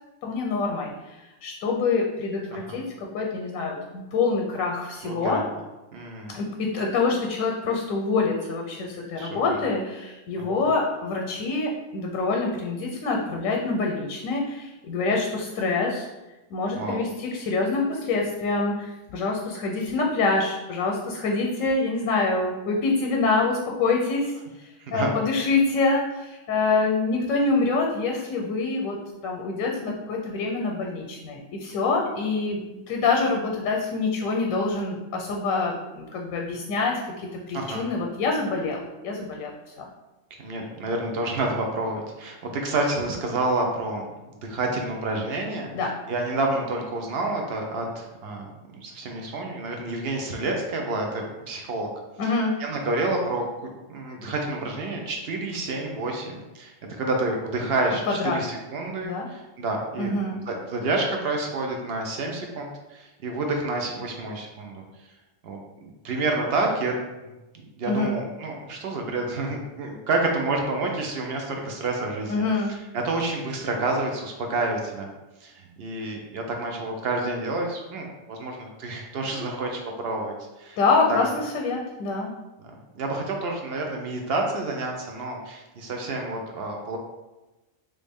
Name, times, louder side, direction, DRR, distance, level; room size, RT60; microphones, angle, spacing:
voice 1, 0.2-1.2 1.4-5.4 6.3-16.1 16.5-24.3 24.9-29.0 29.2-39.5 39.8-39.9 45.7-46.0 52.2-52.6 58.1-58.4 59.0-59.3 60.0-60.4 67.9-68.2 72.3-72.7 80.8-82.3, left 3 dB, 90° left, 1 dB, 1.0 m, -26 dB
voice 2, 5.0-5.5 5.9-6.4 9.2-9.4 16.7-17.0 24.8-25.1 37.5-37.8 40.4-44.0 44.4-45.7 46.1-48.5 48.7-51.9 52.2-52.3 52.6-53.5 53.9-60.1 60.5-64.8 65.4-66.9 67.5-72.4 72.9-75.1 75.4-80.8 81.1-81.2 82.9-87.0, right 2 dB, 60° right, 1 dB, 0.7 m, -29 dB
3.2 x 2.6 x 3.4 m, 1.0 s
omnidirectional pair, 1.4 m